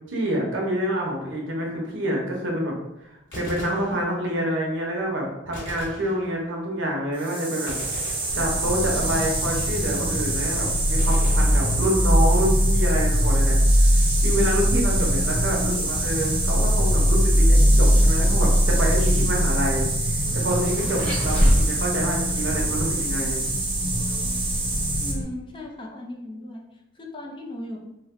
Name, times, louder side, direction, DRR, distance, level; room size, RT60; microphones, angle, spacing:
voice 1, 0.1-2.7 3.0-7.7 8.3-13.6 13.8-23.5, equal, 85° right, -1 dB, 0.9 m, -27 dB
Gunshot gunfire, 3.2-4.5 5.5-6.8 7.7-9.1 11.0-12.3, equal, 85° left, 1.3 m, -40 dB
sound 1, 7.2-25.1, right 3 dB, 25° right, 0.6 m, -28 dB
Vehicle, 8.3-25.2, equal, 5° left, 1.0 m, -22 dB
voice 2, 25.0-26.6 26.9-27.8, left 1 dB, 25° left, 0 dB, 0.5 m, -37 dB
3.2 x 2.2 x 3.6 m, 0.88 s
head